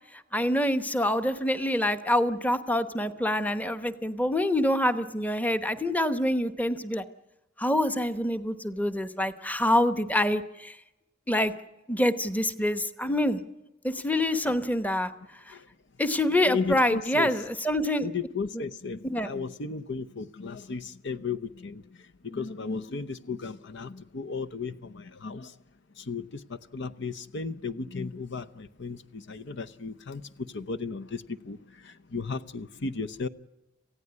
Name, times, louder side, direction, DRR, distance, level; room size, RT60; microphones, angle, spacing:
voice 1, 0.3-7.0 7.6-10.7 11.3-11.5 11.9-13.4 13.8-15.1 16.0-18.1 19.0-19.3, left 1 dB, 10° left, 1.0 m, -26 dB
voice 2, 16.5-17.5 18.0-25.6 26.0-33.3, left 4 dB, 65° left, 0.8 m, -35 dB
27.5 x 16.0 x 9.7 m
head